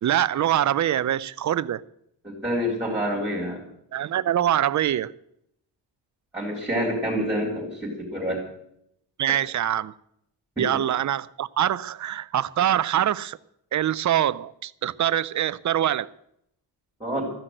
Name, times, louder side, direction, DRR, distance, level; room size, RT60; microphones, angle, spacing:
voice 1, 0.0-1.8 3.9-5.1 9.2-9.9 10.6-13.4 13.7-16.1, right 11 dB, 45° right, 0.5 m, -24 dB
voice 2, 2.2-3.6 6.3-8.4 17.0-17.3, equal, 10° right, 3.7 m, -27 dB
14.0 x 10.0 x 7.7 m
wide cardioid pair, 175°, 42 cm